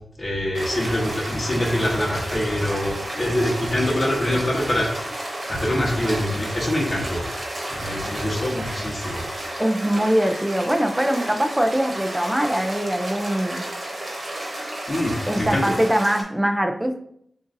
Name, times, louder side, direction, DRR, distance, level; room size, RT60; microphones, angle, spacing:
voice 1, 0.2-4.9 5.5-7.2 7.7-9.5 14.9-15.7, left 1 dB, 40° left, -1 dB, 1.2 m, -24 dB
sound 1, 0.5-16.2, right 1 dB, 40° right, 1.2 m, -32 dB
voice 2, 9.6-13.6 15.3-17.0, right 1 dB, 10° right, 6 dB, 0.4 m, -22 dB
6.8 x 2.6 x 2.6 m, 0.71 s
wide cardioid pair, 90°, 0 cm